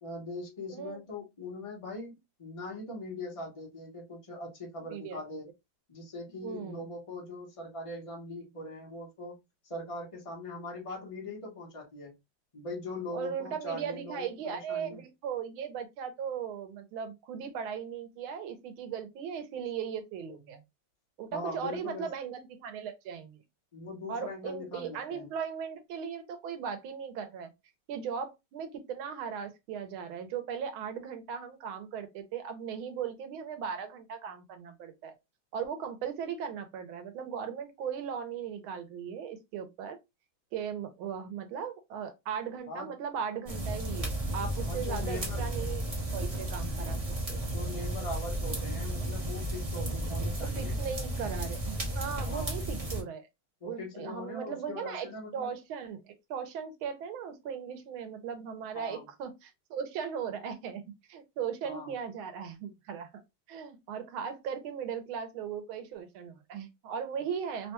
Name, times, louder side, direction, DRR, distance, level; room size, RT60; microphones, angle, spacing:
voice 1, 0.0-5.5 5.9-9.4 9.6-12.1 12.5-15.0 21.3-22.1 23.7-25.3 42.7-42.9 44.6-45.5 47.3-50.8 52.2-52.6 53.6-55.5 58.7-59.1 61.6-61.9, left 2 dB, 60° left, 0.3 m, -41 dB
voice 2, 0.7-1.0 4.9-5.2 6.4-6.8 13.1-20.6 21.2-23.4 24.1-27.5 27.9-35.1 35.5-40.0 40.5-47.4 50.4-53.3 53.7-55.1 55.3-60.8 61.1-63.1 63.5-67.7, right 7 dB, 80° right, 1.5 m, -38 dB
sound 1, 43.5-53.0, right 1 dB, 55° right, 0.4 m, -33 dB
3.6 x 2.2 x 2.8 m
omnidirectional pair, 2.3 m